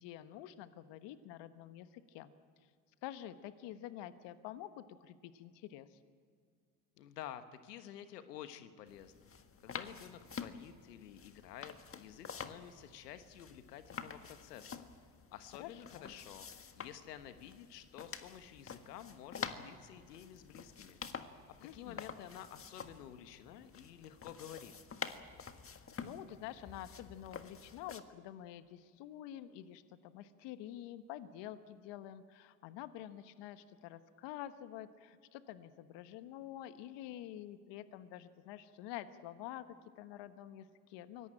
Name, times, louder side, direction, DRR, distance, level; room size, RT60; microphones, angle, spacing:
voice 1, 0.0-2.3 3.0-6.0 15.6-16.0 21.6-22.0 25.8-41.3, left 12 dB, 65° left, 12 dB, 1.3 m, -48 dB
voice 2, 7.0-9.1 9.6-14.9 15.3-21.0 21.5-24.7, left 10 dB, 90° left, 10 dB, 1.2 m, -51 dB
sound 1, 8.9-28.0, left 6 dB, 30° left, 1.6 m, -48 dB
23.5 x 18.0 x 8.9 m, 2.2 s
hypercardioid pair, 75°, 47 cm